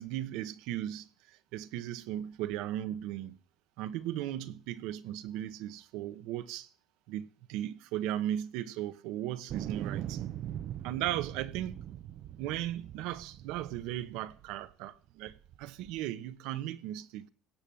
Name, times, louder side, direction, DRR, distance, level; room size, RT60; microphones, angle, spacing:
voice 1, 0.0-3.4 3.8-6.7 7.1-10.2 10.8-11.8 12.4-17.3, right 12 dB, 85° right, 1.0 m, -37 dB
sound 1, 9.5-14.7 15.3-16.0, right 11 dB, 60° right, 0.6 m, -41 dB
17.0 x 7.1 x 7.7 m
cardioid pair, 125°, 0 cm